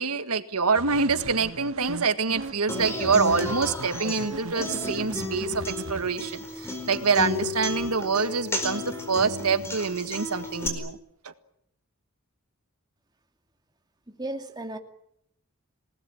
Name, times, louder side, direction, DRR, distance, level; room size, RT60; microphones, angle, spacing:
voice 1, 0.0-8.8 9.1-11.0 11.2-11.3, right 4 dB, 85° right, 10 dB, 1.8 m, -26 dB
sound 1, 0.7-6.1, right 2 dB, 60° right, 1.7 m, -38 dB
Human voice / Acoustic guitar, 2.7-10.7, left 2 dB, 10° left, 4.6 m, -33 dB
voice 2, 14.1-14.8, right 1 dB, 20° right, 5 dB, 2.4 m, -35 dB
28.0 x 19.5 x 9.4 m, 0.72 s
head